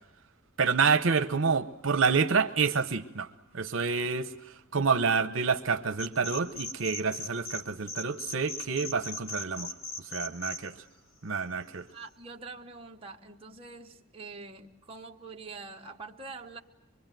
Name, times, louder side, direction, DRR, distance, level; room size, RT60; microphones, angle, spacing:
voice 1, 0.6-10.8 11.2-11.9, right 5 dB, 75° right, 0.9 m, -28 dB
sound 1, 5.9-7.6 7.9-10.6, left 3 dB, 85° left, 2.4 m, -38 dB
voice 2, 11.9-16.6, right 3 dB, 30° right, 1.2 m, -45 dB
25.0 x 23.0 x 9.1 m
head